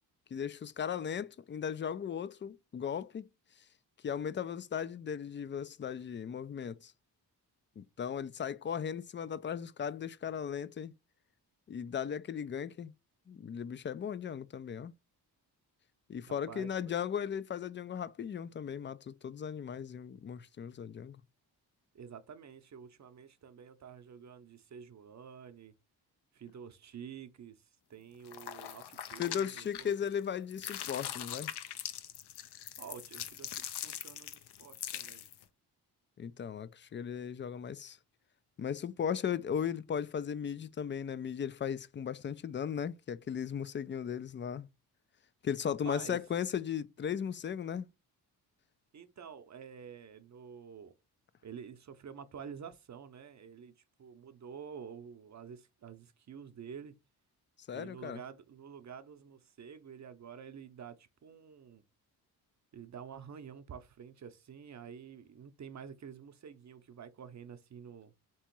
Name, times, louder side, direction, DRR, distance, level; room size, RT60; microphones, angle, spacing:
voice 1, 0.3-3.3 4.0-6.9 7.8-10.9 11.7-12.9 13.3-14.9 16.1-21.2 29.2-31.5 36.2-38.0 38.6-44.7 45.4-47.9 57.6-58.2, left 8 dB, 30° left, 0.4 m, -37 dB
voice 2, 16.3-16.9 21.9-25.7 26.3-29.9 32.8-35.3 45.6-46.2 48.9-50.9 51.4-56.9 57.7-61.8 62.7-68.1, right 7 dB, 45° right, 0.7 m, -49 dB
sound 1, 28.2-30.2 30.5-35.4, left 11 dB, 75° left, 0.7 m, -42 dB
3.5 x 3.0 x 4.5 m
cardioid pair, 65°, 41 cm